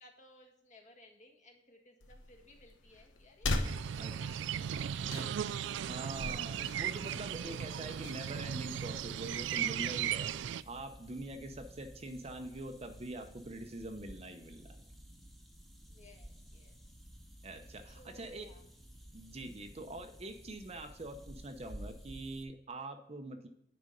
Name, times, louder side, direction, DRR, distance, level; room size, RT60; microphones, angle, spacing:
voice 1, 0.0-5.3 5.7-6.2 6.6-6.8 7.7-8.0 15.9-16.9 17.9-18.7, left 2 dB, 40° left, 1 dB, 1.6 m, -60 dB
sound 1, 2.0-9.5, left 2 dB, 90° left, 1.0 m, -42 dB
sound 2, 3.5-22.4, equal, ahead, 1.0 m, -54 dB
sound 3, 3.6-10.6, right 9 dB, 70° right, 0.3 m, -37 dB
voice 2, 4.0-4.4 5.1-5.3 5.8-10.3 10.7-14.8 17.4-18.5 19.1-23.5, right 1 dB, 35° right, 6 dB, 0.7 m, -44 dB
10.0 x 4.3 x 5.2 m, 0.79 s
head